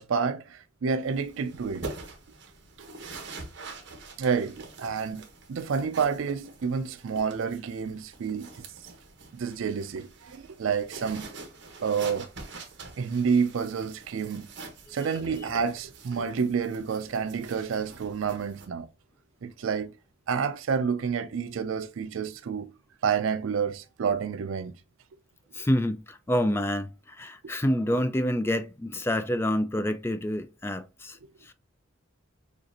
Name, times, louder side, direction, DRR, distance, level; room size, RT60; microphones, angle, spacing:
voice 1, 0.0-1.9 4.2-8.5 9.3-11.3 11.8-12.3 13.0-14.5 14.9-18.9 19.4-19.9 20.3-22.7 23.0-24.7, right 6 dB, 85° right, 0.4 m, -29 dB
sound 1, 1.0-18.7, right 3 dB, 65° right, 1.2 m, -45 dB
voice 2, 25.5-31.2 31.4-31.5, equal, 10° left, 0.3 m, -27 dB
6.5 x 2.5 x 2.8 m
head